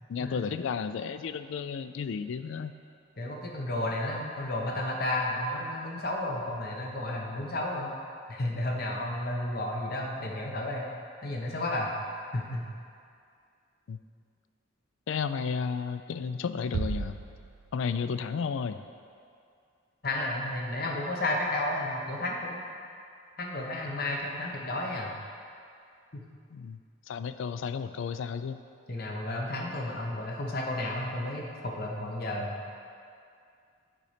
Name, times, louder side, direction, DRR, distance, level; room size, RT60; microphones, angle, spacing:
voice 1, 0.1-2.7 13.9-14.0 15.1-17.2 17.7-18.8 26.5-26.8 27.1-28.6, left 6 dB, 65° left, 11 dB, 0.3 m, -33 dB
voice 2, 3.2-8.0 8.3-10.9 11.2-11.9 12.3-12.6 20.0-22.6 23.4-25.1 26.1-26.2 28.9-32.6, left 1 dB, 45° left, -1 dB, 0.9 m, -32 dB
sound 1, 16.7-18.4, right 4 dB, 80° right, 0.5 m, -35 dB
9.1 x 4.2 x 5.0 m, 2.4 s
head